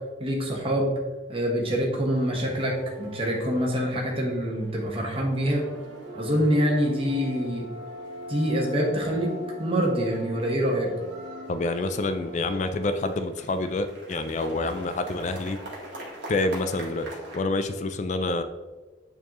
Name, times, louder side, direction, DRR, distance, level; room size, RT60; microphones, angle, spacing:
voice 1, 0.2-0.9 1.3-5.6 6.1-7.7 8.3-9.3 9.6-10.9, equal, 30° right, -1 dB, 1.3 m, -25 dB
sound 1, 2.1-17.3, equal, 65° right, 1.7 m, -42 dB
voice 2, 11.5-15.6 16.3-18.4, left 2 dB, 40° left, 9 dB, 0.3 m, -27 dB
8.8 x 4.4 x 3.1 m, 1.3 s
head